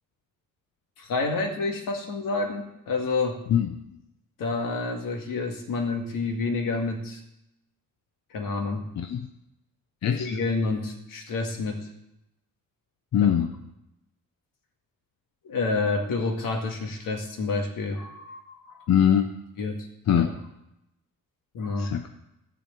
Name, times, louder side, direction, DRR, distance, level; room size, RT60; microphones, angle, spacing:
voice 1, 1.0-3.4 4.4-7.2 8.3-8.9 10.0-11.9 13.2-13.3 15.4-18.8 19.6-20.3 21.5-21.9, left 3 dB, 75° left, 3 dB, 2.1 m, -29 dB
voice 2, 9.0-9.3 10.0-10.3 13.1-13.5 18.9-19.3 20.1-20.3 21.8-22.1, left 9 dB, 55° left, 6 dB, 0.8 m, -22 dB
14.5 x 5.0 x 8.9 m, 0.87 s
cardioid pair, 145°, 33 cm